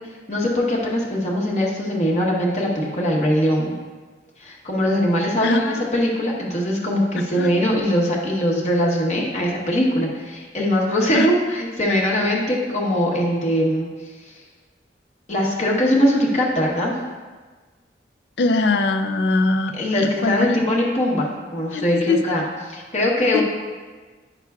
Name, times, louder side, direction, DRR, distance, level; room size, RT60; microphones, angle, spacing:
voice 1, 0.3-3.8 4.4-13.9 15.3-16.9 19.7-23.4, equal, 40° left, -2 dB, 1.0 m, -21 dB
voice 2, 5.4-5.8 7.3-7.5 11.1-11.3 18.4-20.5 21.7-22.3 23.3-23.4, left 3 dB, 65° left, 6 dB, 0.5 m, -22 dB
9.2 x 5.9 x 2.3 m, 1.4 s
head